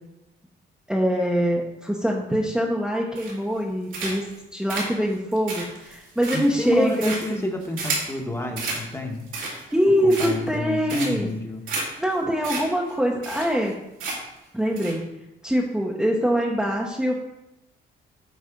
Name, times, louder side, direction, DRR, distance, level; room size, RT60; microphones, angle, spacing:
voice 1, 0.9-7.5 9.5-11.3 12.0-13.8 14.5-15.0 15.4-17.2, equal, 5° right, -2 dB, 0.9 m, -24 dB
sound 1, 3.2-3.6 3.9-4.4 4.7-8.2 8.6-8.8 9.2-9.7 10.1-10.6 10.9-11.3 11.7-11.8 12.1-12.2 12.4-12.6 12.9-13.0 13.2-13.7 14.0-14.4 14.8-14.9, right 3 dB, 80° right, 2.5 m, -31 dB
voice 2, 6.3-9.3 10.0-11.6, left 2 dB, 15° left, 2 dB, 1.2 m, -30 dB
8.3 x 4.1 x 5.1 m, 0.91 s
cardioid pair, 90°, 20 cm